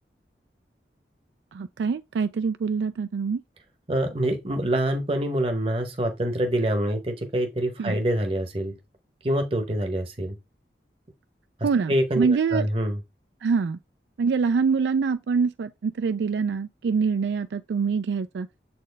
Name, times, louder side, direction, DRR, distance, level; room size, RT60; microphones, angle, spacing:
voice 1, 1.5-3.4 7.8-8.0 11.6-12.7 13.4-13.8 14.2-18.5, right 5 dB, 80° right, 0.3 m, -25 dB
voice 2, 3.9-8.7 9.2-10.4 11.9-13.0, right 1 dB, 30° right, 0.8 m, -25 dB
7.4 x 4.3 x 3.3 m
head